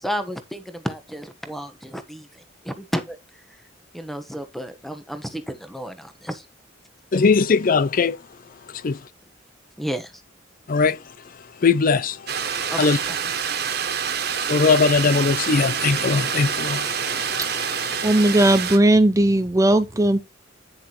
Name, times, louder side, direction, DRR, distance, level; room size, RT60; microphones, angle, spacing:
voice 1, 0.0-3.2 3.9-6.4 9.8-10.1 12.7-13.5, equal, ahead, 1.2 m, -32 dB
voice 2, 7.1-8.2 8.8-9.0 10.7-11.0 11.6-12.3 12.8-13.0 14.5-18.2, left 4 dB, 45° left, 0.4 m, -20 dB
sound 1, 12.3-18.8, right 7 dB, 55° right, 1.6 m, -26 dB
voice 3, 18.0-20.2, right 1 dB, 15° right, 0.5 m, -17 dB
9.7 x 6.6 x 3.1 m
head